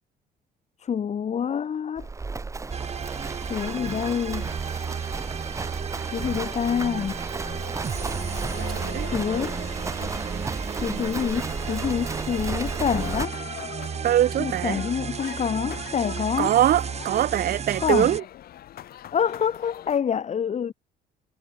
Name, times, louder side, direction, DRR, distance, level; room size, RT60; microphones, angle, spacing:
voice 1, 0.8-2.1 3.5-4.5 6.1-7.2 9.1-9.6 10.7-13.4 14.4-16.5 17.8-18.1 19.1-20.7, left 8 dB, 40° left, 2.6 m, -27 dB
Livestock farm animals working animals, 2.0-13.3, right 3 dB, 20° right, 1.1 m, -33 dB
sound 1, 2.7-18.2, right 7 dB, 40° right, 5.9 m, -33 dB
sound 2, 7.4-20.0, left 12 dB, 65° left, 3.5 m, -43 dB
voice 2, 8.6-9.1 14.0-14.8 16.4-18.2, right 12 dB, 60° right, 1.9 m, -22 dB
cardioid pair, 110°, 17 cm